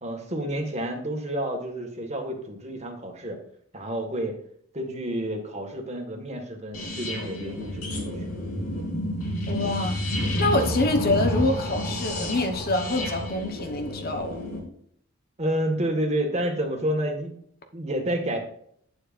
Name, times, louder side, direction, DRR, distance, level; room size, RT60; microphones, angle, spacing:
voice 1, 0.0-3.4 3.7-4.3 4.7-8.3 15.4-17.4 17.7-18.4, right 1 dB, 30° right, 3 dB, 1.8 m, -29 dB
sound 1, 6.7-14.6, equal, 75° left, 3.3 m, -30 dB
voice 2, 9.5-10.0 10.4-14.5, left 2 dB, 45° left, 5 dB, 1.1 m, -26 dB
11.0 x 9.1 x 2.6 m, 0.66 s
head